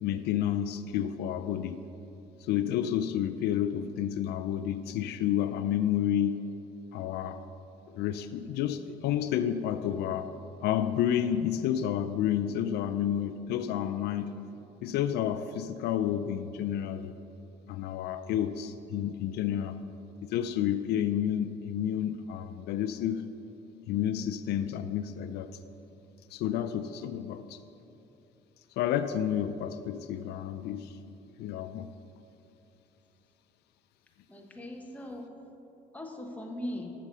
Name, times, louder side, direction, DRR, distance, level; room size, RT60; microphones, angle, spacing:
voice 1, 0.0-1.8 2.4-6.4 6.9-7.4 7.9-10.3 10.6-14.3 14.8-17.1 17.7-19.8 20.2-23.3 23.9-25.5 26.3-27.6 28.8-31.0 31.4-31.9, left 10 dB, 75° left, 10 dB, 0.4 m, -30 dB
voice 2, 34.3-35.3 35.9-36.9, left 1 dB, 10° left, 1 dB, 1.2 m, -39 dB
7.4 x 6.9 x 6.5 m, 2.8 s
cardioid pair, 110°, 17 cm